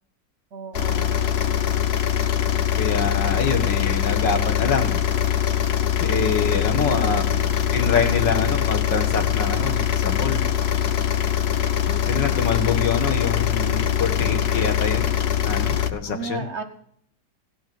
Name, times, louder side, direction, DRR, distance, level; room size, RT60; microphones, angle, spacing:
voice 1, 0.5-1.3 7.0-7.8 15.6-15.7 16.0-16.6, right 4 dB, 55° right, 7 dB, 0.8 m, -35 dB
sound 1, 0.7-15.9, left 10 dB, 60° left, 0.6 m, -22 dB
voice 2, 2.8-5.0 6.0-7.2 7.7-10.4 11.9-15.1 15.4-16.5, left 5 dB, 80° left, 5 dB, 2.1 m, -25 dB
17.0 x 5.6 x 9.1 m, 0.70 s
omnidirectional pair, 1.9 m